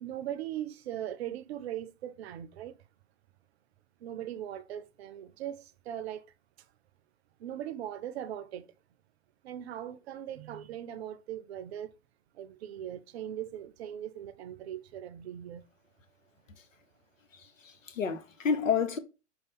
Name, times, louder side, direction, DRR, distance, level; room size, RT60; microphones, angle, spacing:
voice 1, 0.0-2.7 4.0-6.2 7.4-8.6 9.4-11.9 12.4-15.6, right 11 dB, 55° right, 0.6 m, -39 dB
voice 2, 17.3-19.0, left 6 dB, 90° left, 0.8 m, -30 dB
5.4 x 2.2 x 3.5 m
hypercardioid pair, 115°, 38 cm